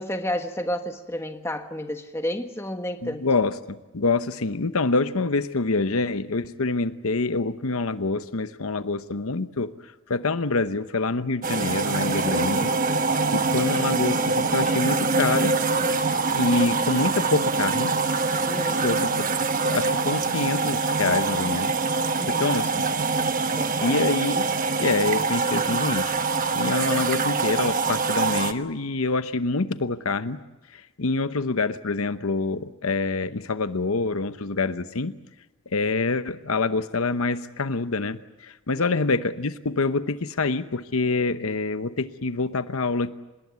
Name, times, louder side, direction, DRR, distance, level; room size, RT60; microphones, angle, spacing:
voice 1, 0.0-3.3 12.2-12.7 18.4-18.9 22.2-22.6 23.5-24.1 38.8-39.1, left 1 dB, 10° left, 6 dB, 1.4 m, -31 dB
voice 2, 3.0-9.7 10.1-12.7 13.3-15.6 16.3-17.9 18.8-19.3 19.6-21.8 22.3-22.9 23.8-24.5 24.8-26.2 26.5-30.4 30.7-35.1 35.7-43.1, left 3 dB, 75° left, 12 dB, 0.9 m, -26 dB
sound 1, 11.4-28.5, right 4 dB, 40° right, 1.1 m, -24 dB
25.5 x 20.5 x 9.5 m, 1.1 s
head